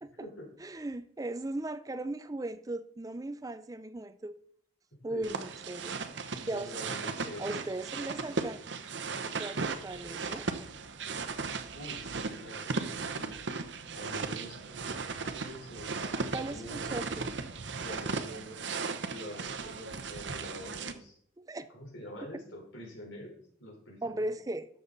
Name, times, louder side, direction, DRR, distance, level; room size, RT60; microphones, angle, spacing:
voice 1, 0.6-4.4 5.0-6.0 6.5-6.7 7.4-8.6 9.2-10.5 16.3-17.3 21.4-21.7 24.0-24.7, right 2 dB, 20° right, 0.4 m, -37 dB
voice 2, 5.1-5.4 6.5-7.6 11.7-13.4 13.9-15.0 15.2-17.0 17.8-18.6 19.1-21.2 21.7-23.3 23.6-24.3, equal, 80° left, 4.1 m, -46 dB
sound 1, 5.2-20.9, right 4 dB, 70° right, 0.9 m, -37 dB
12.5 x 6.9 x 4.0 m
head